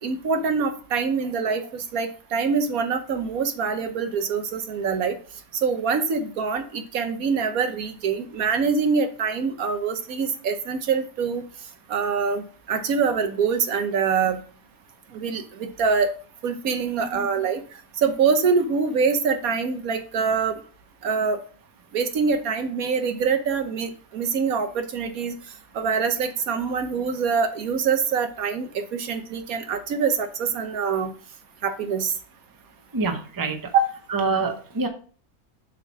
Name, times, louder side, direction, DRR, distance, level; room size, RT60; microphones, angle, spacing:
voice 1, 0.0-5.2 5.6-11.4 11.9-14.4 15.1-16.1 16.4-17.6 18.0-20.6 21.0-21.4 21.9-25.3 25.7-31.1 31.6-32.1 33.7-33.9, right 5 dB, 75° right, 7 dB, 1.4 m, -24 dB
voice 2, 32.9-33.7 34.1-34.9, right 4 dB, 20° right, 5 dB, 0.8 m, -26 dB
7.2 x 3.8 x 6.1 m, 0.42 s
omnidirectional pair, 1.5 m